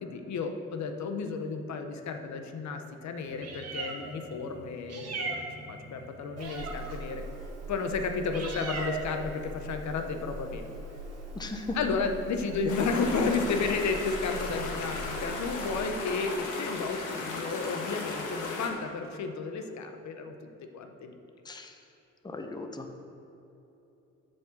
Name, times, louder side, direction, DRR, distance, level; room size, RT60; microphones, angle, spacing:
voice 1, 0.0-7.2 7.7-10.7 11.7-20.3 20.7-21.2, left 4 dB, 65° left, 6 dB, 0.9 m, -32 dB
Meow, 3.2-15.8, right 3 dB, 55° right, 1.5 m, -40 dB
voice 2, 11.3-11.8 21.4-21.7 22.2-22.9, left 2 dB, 15° left, 4 dB, 0.8 m, -37 dB
sound 1, 12.7-18.7, left 3 dB, 90° left, 1.5 m, -36 dB
7.5 x 5.3 x 7.2 m, 2.9 s
cardioid pair, 90°, 30 cm